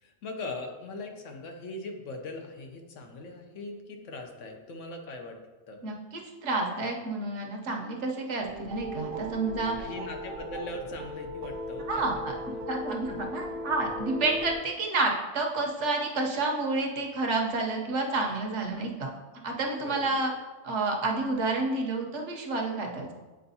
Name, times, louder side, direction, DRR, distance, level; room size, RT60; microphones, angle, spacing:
voice 1, 0.0-5.4 5.7-5.8 9.8-12.6 18.8-18.9 19.8-20.2, left 2 dB, 70° left, 3 dB, 1.1 m, -40 dB
voice 2, 5.8-9.7 11.9-12.3 12.7-19.1 19.4-20.3 20.6-23.1, right 3 dB, 65° right, 1 dB, 1.1 m, -29 dB
sound 1, 8.4-14.6, equal, 90° right, 1.1 m, -37 dB
7.7 x 4.4 x 2.7 m, 1.2 s
omnidirectional pair, 1.4 m